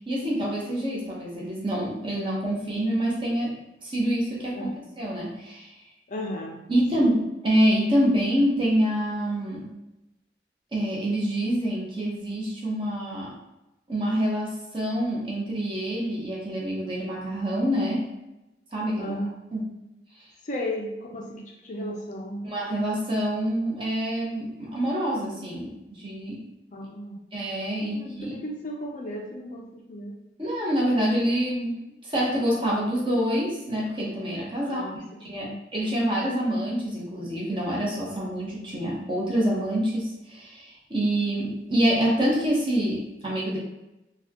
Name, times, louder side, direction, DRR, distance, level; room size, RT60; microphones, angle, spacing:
voice 1, 0.1-3.5 3.8-4.7 5.0-5.7 6.7-9.7 10.7-13.3 13.9-18.1 18.7-19.1 19.5-19.7 22.4-26.4 27.3-28.3 30.4-31.8 32.1-34.9 35.2-43.6, equal, 30° right, -4 dB, 0.9 m, -26 dB
voice 2, 4.5-4.8 6.1-7.1 19.0-19.3 20.4-22.4 26.7-27.2 27.9-30.2 34.6-35.0 35.3-35.6, left 1 dB, 40° left, 0 dB, 0.5 m, -35 dB
4.1 x 2.3 x 2.8 m, 0.94 s
head